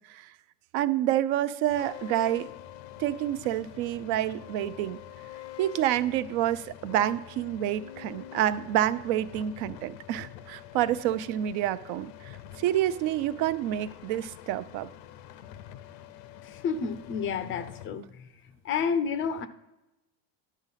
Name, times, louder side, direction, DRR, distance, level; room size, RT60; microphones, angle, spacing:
voice 1, 0.7-2.5 3.0-5.0 5.6-14.9, right 12 dB, 60° right, 15 dB, 0.6 m, -28 dB
sound 1, 1.7-17.9, left 12 dB, 90° left, 0.7 m, -46 dB
voice 2, 16.4-18.3 18.6-19.5, left 6 dB, 25° left, 13 dB, 0.4 m, -30 dB
11.0 x 4.0 x 5.6 m, 0.99 s
supercardioid pair, 130°, 49 cm